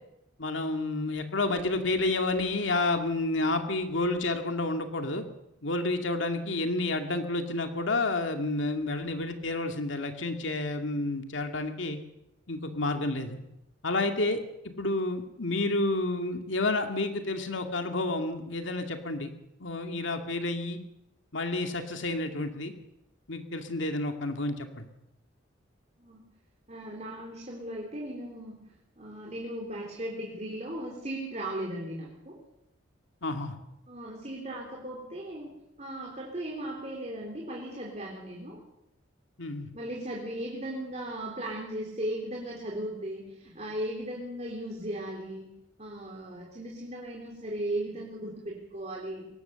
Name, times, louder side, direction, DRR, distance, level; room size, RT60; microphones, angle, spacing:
voice 1, 0.4-5.2 5.6-12.0 12.5-13.4 13.8-14.4 14.8-19.3 19.6-20.8 21.3-22.7 23.3-24.9 33.2-33.6 39.4-39.7, left 2 dB, 75° left, 5 dB, 2.2 m, -30 dB
voice 2, 26.7-28.6 29.0-32.4 33.9-38.6 39.7-45.5 45.8-49.3, right 1 dB, 35° right, -1 dB, 3.6 m, -37 dB
23.0 x 19.5 x 7.0 m, 0.85 s
head